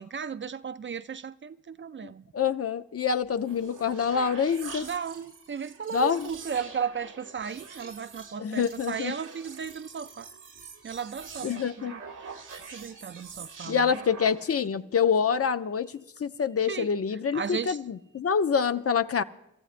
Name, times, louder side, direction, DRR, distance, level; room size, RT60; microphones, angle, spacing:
voice 1, 0.0-2.2 4.8-10.3 10.8-12.0 12.3-12.4 12.7-14.2 16.6-16.9 17.3-17.8, right 7 dB, 40° right, 0.4 m, -35 dB
voice 2, 2.3-4.9 5.9-6.3 8.4-9.1 11.4-11.9 13.7-19.2, left 6 dB, 50° left, 0.6 m, -26 dB
sound 1, 3.2-14.7, right 5 dB, 85° right, 1.4 m, -45 dB
28.0 x 13.5 x 2.5 m
cardioid pair, 50°, 30 cm